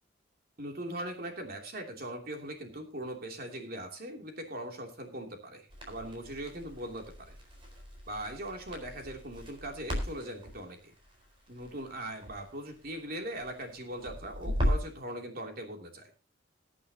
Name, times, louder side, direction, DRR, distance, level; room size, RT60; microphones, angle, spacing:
voice 1, 0.6-7.3 8.1-10.9 11.5-16.1, right 1 dB, 50° right, 3 dB, 2.9 m, -40 dB
Crackle, 5.7-15.0, equal, 30° right, 4.2 m, -37 dB
21.5 x 8.6 x 2.9 m, 0.29 s
head